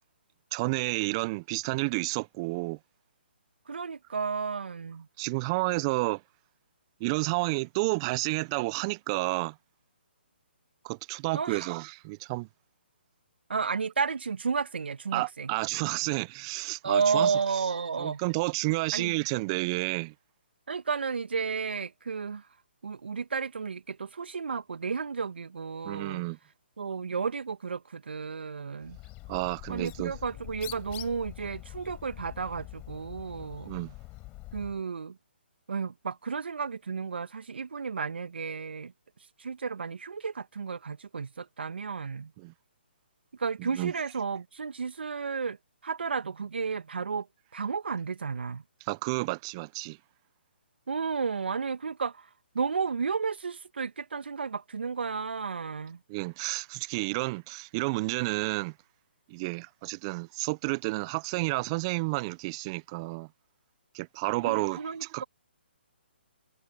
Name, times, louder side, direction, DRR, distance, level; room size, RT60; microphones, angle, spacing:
voice 1, 0.5-2.8 5.2-6.2 7.0-9.5 10.8-12.5 15.1-17.3 18.0-20.1 25.8-26.4 29.3-30.1 33.7-33.9 42.4-42.5 43.6-43.9 48.8-50.0 56.1-58.7 59.3-63.3 63.9-65.2, right 25 dB, 30° right, 1.0 m, -30 dB
voice 2, 3.7-5.1 11.3-11.7 13.5-15.5 16.8-18.2 18.9-19.2 20.7-22.5 22.8-26.2 26.8-29.0 29.7-33.8 34.5-35.2 35.7-38.9 39.4-42.3 43.3-45.6 45.8-47.3 47.5-48.6 50.9-56.0 64.4-65.2, right 5 dB, 70° right, 1.7 m, -32 dB
Bird, 28.8-34.8, left 22 dB, 25° left, 6.5 m, -45 dB
figure-of-eight pair, 135°, 6 cm